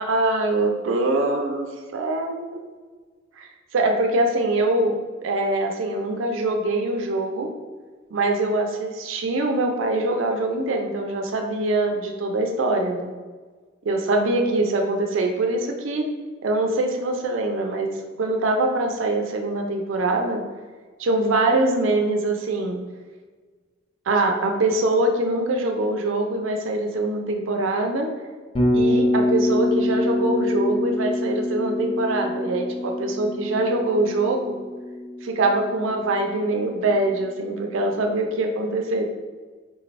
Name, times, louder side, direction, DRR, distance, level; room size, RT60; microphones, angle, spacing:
voice 1, 0.0-1.7 1.9-2.7 3.4-5.0 5.2-7.5 8.1-13.1 13.8-16.0 16.4-17.9 18.2-20.4 21.0-22.8 24.1-28.1 28.7-34.6 35.2-39.1, right 2 dB, 70° right, 3 dB, 0.4 m, -23 dB
Bass guitar, 28.5-36.6, left 1 dB, 25° left, 0.5 m, -25 dB
3.7 x 3.2 x 2.5 m, 1.4 s
head